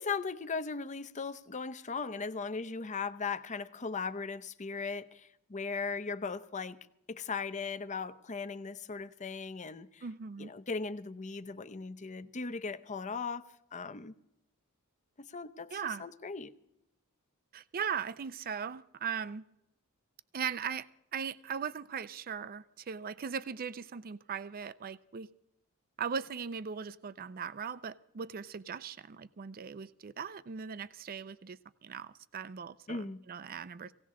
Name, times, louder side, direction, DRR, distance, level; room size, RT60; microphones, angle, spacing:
voice 1, 0.0-6.8 7.1-10.0 10.4-13.4 13.7-14.1 15.2-16.5 32.9-33.2, left 4 dB, 35° left, 12 dB, 0.7 m, -38 dB
voice 2, 10.0-10.5 15.7-16.0 17.5-19.4 20.3-20.9 21.1-25.3 26.0-33.9, right 7 dB, 40° right, 16 dB, 0.4 m, -39 dB
18.0 x 17.5 x 3.7 m, 0.81 s
head